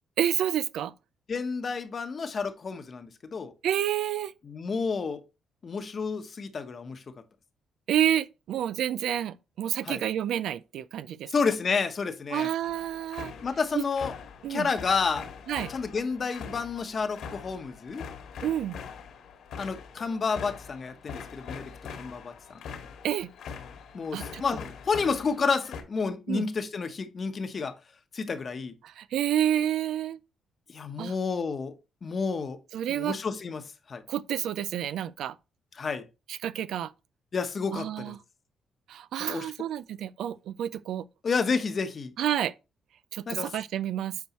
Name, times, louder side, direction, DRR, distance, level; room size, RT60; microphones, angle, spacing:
voice 1, 0.2-0.9 3.6-4.3 7.9-11.3 12.3-13.3 13.7-13.8 14.4-14.7 15.5-15.7 18.4-18.8 23.0-23.3 24.1-24.4 26.3-26.5 28.8-30.2 31.0-31.1 32.7-33.2 34.1-35.3 36.3-36.9 37.7-38.2 38.9-41.1 42.2-42.5 43.1-44.2, right 11 dB, 80° right, 0.4 m, -29 dB
voice 2, 1.3-3.5 4.4-5.2 5.6-7.0 9.8-10.0 11.3-12.5 13.4-14.1 14.5-15.3 15.7-18.1 19.6-21.7 22.0-22.6 23.9-27.8 28.1-28.7 30.7-31.7 32.0-32.6 32.9-34.0 35.8-36.0 37.3-38.1 39.3-39.5 41.2-42.1 43.3-43.5, left 5 dB, 40° left, 1.0 m, -30 dB
sound 1, 12.6-25.8, left 6 dB, 80° left, 2.0 m, -43 dB
8.2 x 4.6 x 3.0 m
cardioid pair, 90°, 0 cm